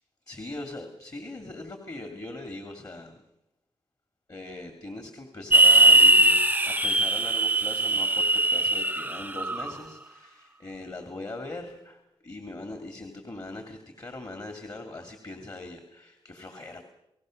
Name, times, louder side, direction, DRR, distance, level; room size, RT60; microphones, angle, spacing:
voice 1, 0.3-3.2 4.3-16.8, left 2 dB, 40° left, 5 dB, 2.6 m, -41 dB
sound 1, 5.5-9.7, right 1 dB, 15° right, 0.7 m, -20 dB
30.0 x 18.0 x 6.5 m, 0.89 s
wide cardioid pair, 85°, 10 cm